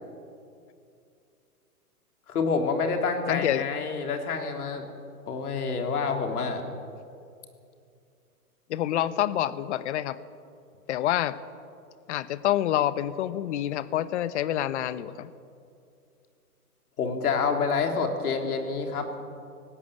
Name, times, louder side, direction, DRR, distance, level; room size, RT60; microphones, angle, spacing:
voice 1, 2.3-4.8 5.3-6.6 17.0-19.2, left 5 dB, 75° left, 4 dB, 3.5 m, -27 dB
voice 2, 3.3-3.6 8.7-10.2 10.9-11.4 12.1-15.3, left 12 dB, 50° left, 15 dB, 1.0 m, -27 dB
20.0 x 17.0 x 8.1 m, 2.5 s
hypercardioid pair, 150°, 46 cm